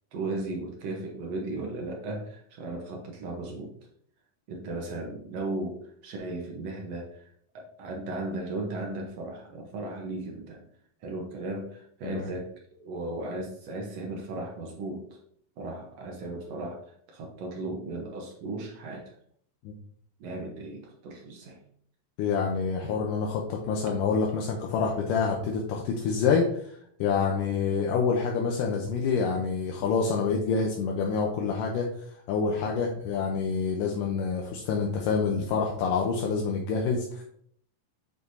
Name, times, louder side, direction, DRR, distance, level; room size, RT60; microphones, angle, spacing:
voice 1, 0.1-3.7 4.5-10.6 11.0-12.5 12.8-15.2 15.6-19.1 20.2-21.6 22.8-22.9, right 2 dB, 70° right, 0 dB, 1.6 m, -36 dB
voice 2, 22.2-26.7 27.0-31.9 32.3-37.2, left 5 dB, 80° left, 0 dB, 2.2 m, -27 dB
7.9 x 4.9 x 2.7 m, 0.63 s
omnidirectional pair, 4.1 m